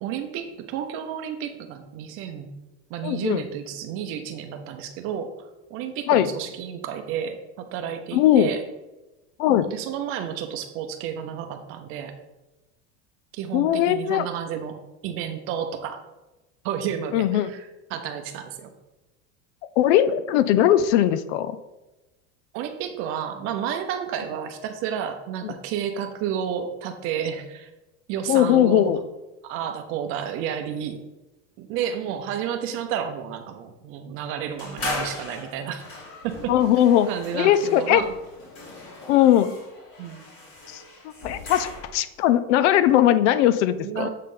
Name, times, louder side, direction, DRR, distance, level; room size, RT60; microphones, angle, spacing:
voice 1, 0.0-2.5 2.9-5.3 5.7-8.6 9.5-12.1 13.3-14.8 15.0-16.0 16.6-18.7 22.5-27.7 28.1-29.0 29.4-31.0 31.6-35.8 36.2-36.5 37.1-38.1 40.0-40.2 43.8-44.1, right 8 dB, 35° right, 7 dB, 0.7 m, -31 dB
voice 2, 3.0-3.4 6.1-6.3 8.1-8.5 9.4-9.7 13.5-14.3 17.1-17.5 19.8-21.6 25.4-25.6 28.3-29.0 36.5-38.0 39.1-39.5 40.7-40.8 41.2-44.1, left 11 dB, 70° left, 13 dB, 0.7 m, -19 dB
sound 1, 34.6-42.1, left 2 dB, 30° left, 2.8 m, -38 dB
7.6 x 6.5 x 3.8 m, 1.0 s
cardioid pair, 180°, 36 cm